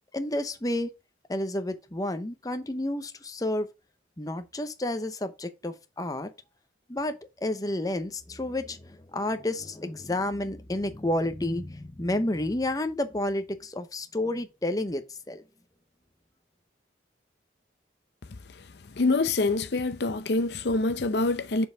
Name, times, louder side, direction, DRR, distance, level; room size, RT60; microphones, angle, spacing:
voice 1, 0.1-0.9 1.3-3.7 4.2-6.3 6.9-15.4, left 1 dB, 20° left, 0.8 m, -30 dB
voice 2, 19.0-21.7, left 3 dB, 65° left, 0.7 m, -25 dB
6.9 x 5.4 x 3.4 m
head